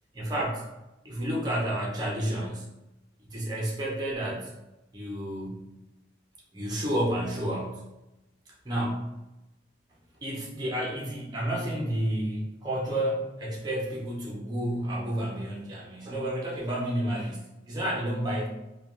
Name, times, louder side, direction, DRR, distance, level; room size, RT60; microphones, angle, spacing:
voice 1, 0.1-0.6 1.0-2.7 3.2-4.5 4.9-5.7 6.5-7.8 8.6-9.1 10.2-18.5, right 1 dB, 20° right, -4 dB, 0.6 m, -30 dB
3.2 x 2.2 x 2.4 m, 0.96 s
head